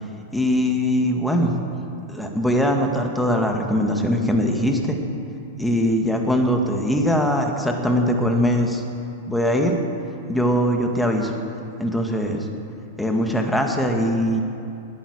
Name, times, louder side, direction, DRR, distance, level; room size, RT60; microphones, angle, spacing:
voice 1, 0.3-1.5 2.1-5.0 5.6-8.8 9.3-9.8 10.3-11.4 11.8-12.5 13.0-14.4, equal, 5° left, 2 dB, 2.0 m, -21 dB
20.5 x 9.2 x 6.6 m, 2.6 s
hypercardioid pair, 105°, 0 cm